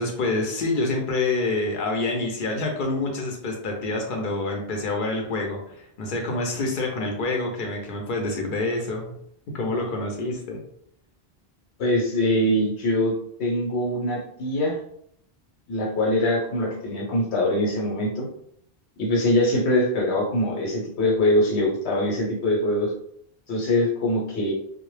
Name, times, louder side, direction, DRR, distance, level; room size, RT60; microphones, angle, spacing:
voice 1, 0.0-9.1 9.5-10.6, left 2 dB, 60° left, 1 dB, 0.7 m, -27 dB
voice 2, 11.8-13.1 13.4-14.8 15.7-18.3 19.0-22.9 23.5-24.5, left 1 dB, 85° left, -3 dB, 1.0 m, -23 dB
2.0 x 2.0 x 3.1 m, 0.69 s
omnidirectional pair, 1.1 m